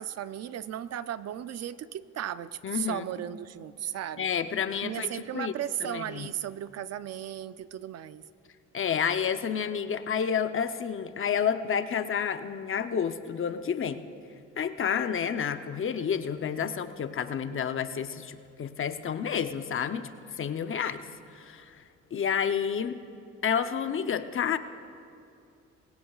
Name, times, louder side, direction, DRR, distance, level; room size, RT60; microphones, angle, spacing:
voice 1, 0.0-4.3 4.8-8.2, right 11 dB, 55° right, 14 dB, 0.5 m, -36 dB
voice 2, 2.6-3.0 4.2-5.5 5.8-6.3 8.7-14.0 14.6-20.1 20.4-21.0 21.3-21.8 22.1-23.0 23.4-24.6, left 7 dB, 45° left, 10 dB, 0.7 m, -30 dB
21.5 x 16.5 x 2.4 m, 2.5 s
cardioid pair, 90°, 30 cm